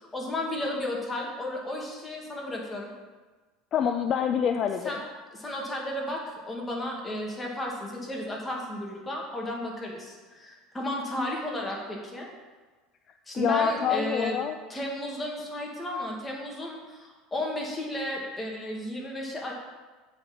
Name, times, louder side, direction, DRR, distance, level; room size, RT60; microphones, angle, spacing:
voice 1, 0.1-2.9 4.8-5.0 5.4-6.2 6.5-12.3 13.3-14.4 14.7-19.5, left 1 dB, 15° left, -2 dB, 1.9 m, -33 dB
voice 2, 3.7-4.9 13.4-14.6, left 8 dB, 45° left, 7 dB, 0.4 m, -26 dB
7.5 x 4.1 x 6.0 m, 1.3 s
supercardioid pair, 105°, 0 cm